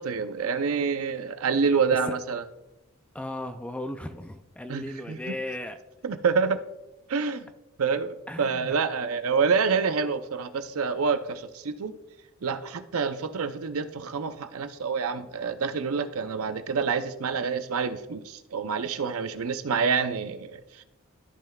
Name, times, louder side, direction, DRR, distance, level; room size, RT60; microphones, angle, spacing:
voice 1, 0.0-2.4 4.7-5.4 6.0-6.6 7.1-7.5 7.8-11.9 12.4-20.8, right 5 dB, 70° right, 10 dB, 0.5 m, -27 dB
voice 2, 3.1-5.8 8.3-8.7, left 1 dB, 5° left, 8 dB, 0.3 m, -36 dB
13.5 x 5.6 x 2.3 m, 0.93 s
head